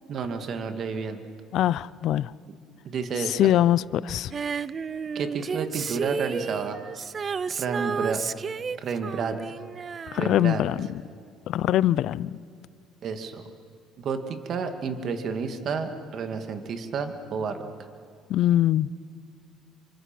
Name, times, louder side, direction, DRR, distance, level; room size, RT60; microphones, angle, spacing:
voice 1, 0.1-1.2 2.9-3.5 5.1-6.8 7.5-8.2 8.8-9.5 10.2-10.7 13.0-13.4 14.0-17.7, right 5 dB, 55° right, 7 dB, 2.2 m, -31 dB
voice 2, 1.5-2.3 3.4-4.3 10.1-10.9 11.5-12.3 18.3-18.9, left 12 dB, 65° left, 20 dB, 0.5 m, -22 dB
Female singing, 4.3-10.9 11.2-11.3, right 6 dB, 40° right, 0.6 m, -32 dB
27.5 x 24.5 x 6.1 m, 2.2 s
supercardioid pair, 85°, 0 cm